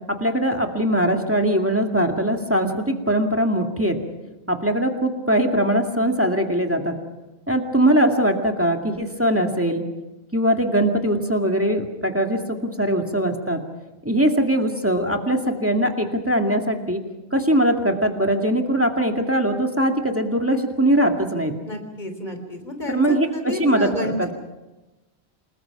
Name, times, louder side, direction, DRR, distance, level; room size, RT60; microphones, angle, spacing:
voice 1, 0.1-4.0 4.5-6.9 7.5-9.8 10.3-13.6 14.0-17.0 17.3-21.5 22.9-24.3, right 1 dB, 10° right, 3 dB, 2.2 m, -21 dB
voice 2, 21.6-24.3, equal, 45° left, 5 dB, 3.9 m, -30 dB
28.5 x 20.0 x 5.9 m, 1.1 s
omnidirectional pair, 1.1 m